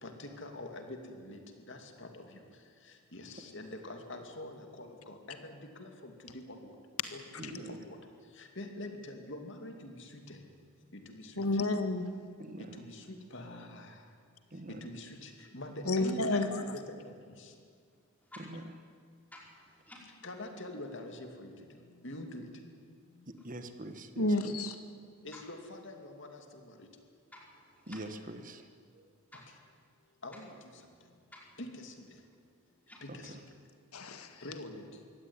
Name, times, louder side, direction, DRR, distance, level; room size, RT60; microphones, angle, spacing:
voice 1, 0.0-2.4 3.1-6.7 7.1-8.0 8.4-10.4 10.9-11.3 12.8-14.0 14.8-17.1 17.4-17.5 20.2-21.5 22.0-22.5 25.2-26.4 26.7-26.9 30.2-30.5 31.6-31.9 33.0-33.4 34.4-34.8, left 1 dB, 55° left, 5 dB, 2.6 m, -45 dB
voice 2, 7.4-7.8 12.4-12.8 14.5-14.9 18.4-18.6 23.3-24.7 27.9-28.7 28.9-29.1 33.1-33.4, right 1 dB, 40° right, 8 dB, 1.3 m, -44 dB
voice 3, 11.4-12.1 15.9-16.6 24.2-24.7 33.9-34.4, left 2 dB, 90° left, 8 dB, 1.8 m, -30 dB
voice 4, 19.3-20.0 25.3-25.4 27.3-28.0 29.3-29.5 31.3-31.6 32.9-33.0, left 1 dB, 5° left, -2 dB, 4.8 m, -53 dB
23.5 x 16.5 x 9.8 m, 2.2 s
head